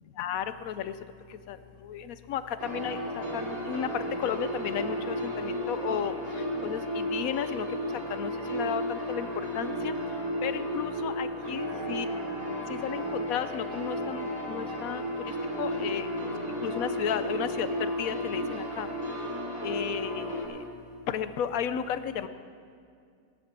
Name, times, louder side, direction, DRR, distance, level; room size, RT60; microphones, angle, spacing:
voice 1, 0.2-0.9 1.5-1.6 1.8-3.9 4.2-6.1 6.6-7.7 8.1-9.3 9.5-9.9 10.4-12.1 12.7-15.1 15.6-16.1 16.6-17.7 18.0-18.9 19.6-20.6 21.1-22.3, left 8 dB, 70° left, 12 dB, 1.1 m, -33 dB
sound 1, 2.6-20.4, equal, 75° right, 4.0 m, -33 dB
18.5 x 12.5 x 6.1 m, 2.3 s
omnidirectional pair, 1.5 m